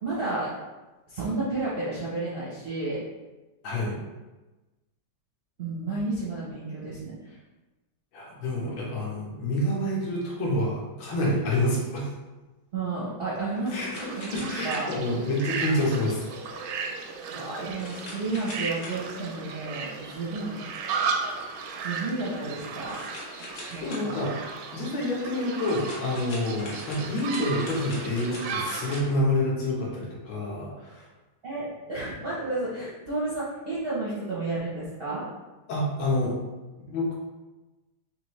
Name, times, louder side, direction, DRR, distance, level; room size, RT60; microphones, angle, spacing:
voice 1, 0.0-0.5 1.1-3.0 5.6-7.2 12.7-14.9 17.3-20.6 21.8-23.0 23.7-24.2 31.4-35.3, right 2 dB, 55° right, -8 dB, 0.6 m, -32 dB
voice 2, 3.6-4.0 8.1-12.1 13.7-13.9 14.3-16.2 20.9-21.1 23.5-24.4 24.7-31.0 35.7-36.4 36.9-37.1, left 1 dB, 90° left, -4 dB, 1.9 m, -28 dB
sound 1, 13.3-29.1, left 1 dB, 55° left, 1.2 m, -44 dB
sound 2, 14.0-29.0, right 5 dB, 90° right, 1.4 m, -35 dB
4.2 x 3.1 x 3.1 m, 1.1 s
omnidirectional pair, 2.1 m